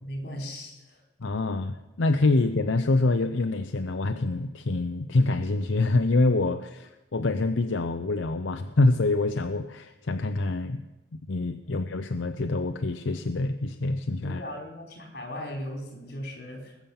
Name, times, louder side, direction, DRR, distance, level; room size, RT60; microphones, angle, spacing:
voice 1, 0.0-1.0 11.7-11.8 14.2-16.8, equal, 55° left, 2 dB, 3.7 m, -38 dB
voice 2, 1.2-10.8 11.3-14.4, left 2 dB, 80° left, 7 dB, 0.7 m, -26 dB
20.0 x 7.2 x 7.2 m, 1.0 s
head